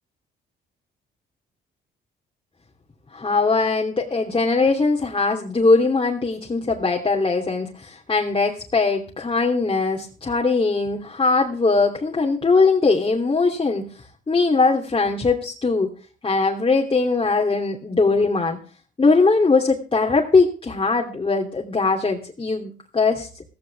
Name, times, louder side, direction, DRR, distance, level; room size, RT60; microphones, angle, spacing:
voice 1, 3.1-13.9 14.3-15.9 16.2-18.6 19.0-23.4, left 3 dB, 25° left, 0 dB, 3.0 m, -20 dB
15.5 x 15.5 x 3.5 m, 0.39 s
cardioid pair, 90°, 20 cm